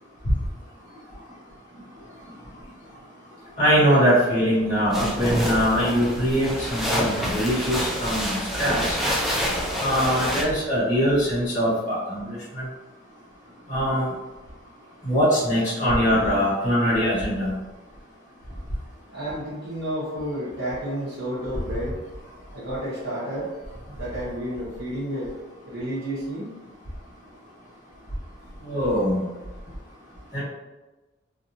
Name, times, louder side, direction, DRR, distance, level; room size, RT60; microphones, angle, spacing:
voice 1, 3.6-8.9 9.8-12.6 13.7-14.1 15.0-17.5 28.7-29.2 30.3-30.4, equal, 35° left, -11 dB, 1.4 m, -22 dB
sound 1, 4.9-10.4, equal, ahead, 0.5 m, -27 dB
voice 2, 19.1-22.0 22.5-23.5 23.9-25.3 25.6-26.6, equal, 90° right, -10 dB, 1.0 m, -31 dB
3.0 x 2.5 x 2.6 m, 1.1 s
head